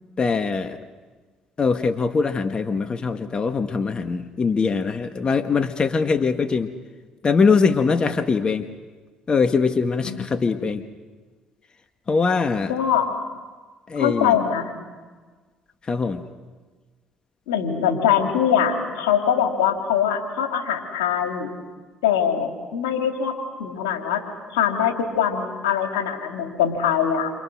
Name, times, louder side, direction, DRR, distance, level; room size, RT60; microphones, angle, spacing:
voice 1, 0.2-0.8 1.6-6.7 7.2-8.7 9.3-10.8 12.1-12.7 13.9-14.4 15.8-16.2, left 5 dB, 40° left, 8 dB, 1.6 m, -22 dB
voice 2, 12.7-13.0 13.9-14.7 17.5-21.5 22.0-23.3 23.6-24.2 24.5-27.3, left 8 dB, 90° left, 3 dB, 3.4 m, -22 dB
29.0 x 26.5 x 6.5 m, 1.4 s
hypercardioid pair, 60°, 2 cm